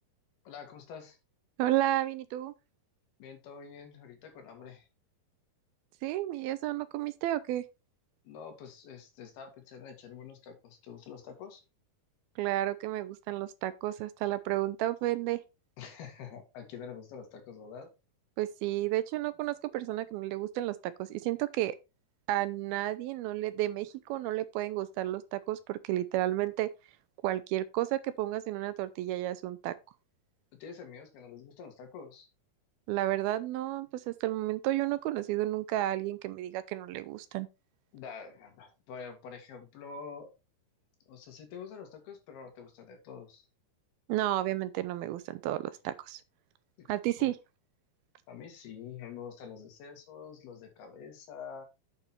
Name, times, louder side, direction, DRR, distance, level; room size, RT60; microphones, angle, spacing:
voice 1, 0.5-1.2 3.2-4.9 8.2-11.6 15.8-17.9 30.6-32.3 37.9-40.3 41.1-43.5 47.2-47.3 48.3-51.7, left 6 dB, 75° left, 3.9 m, -46 dB
voice 2, 1.6-2.5 6.0-7.6 12.4-15.4 18.4-21.8 22.3-26.7 27.2-29.7 32.9-37.5 44.1-46.2 46.9-47.3, right 15 dB, 80° right, 2.4 m, -32 dB
9.0 x 5.9 x 4.3 m
omnidirectional pair, 4.5 m